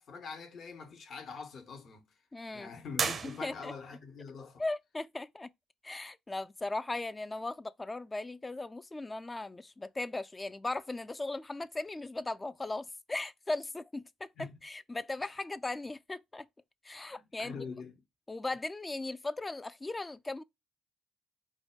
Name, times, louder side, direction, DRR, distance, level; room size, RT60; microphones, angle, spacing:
voice 1, 0.0-2.1 2.5-4.6 14.4-14.6 15.2-15.4 17.1-17.9, left 5 dB, 60° left, 1.1 m, -44 dB
voice 2, 2.3-2.7 3.2-3.7 4.6-5.5 5.8-14.3 14.6-16.5 16.8-17.6 18.3-20.4, left 2 dB, 25° left, 0.4 m, -38 dB
sound 1, 2.9-4.0, right 5 dB, 55° right, 0.6 m, -35 dB
4.6 x 2.3 x 4.4 m
hypercardioid pair, 50°, 0 cm